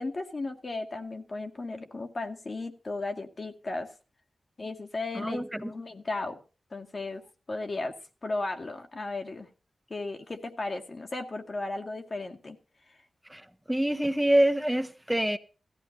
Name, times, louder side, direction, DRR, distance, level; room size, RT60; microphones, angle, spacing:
voice 1, 0.0-3.9 4.6-6.4 6.7-7.2 7.5-7.9 8.2-9.5 9.9-12.6, left 2 dB, 55° left, 2.1 m, -35 dB
voice 2, 13.7-15.4, right 1 dB, 5° right, 1.2 m, -25 dB
17.5 x 14.5 x 2.8 m
cardioid pair, 45°, 0 cm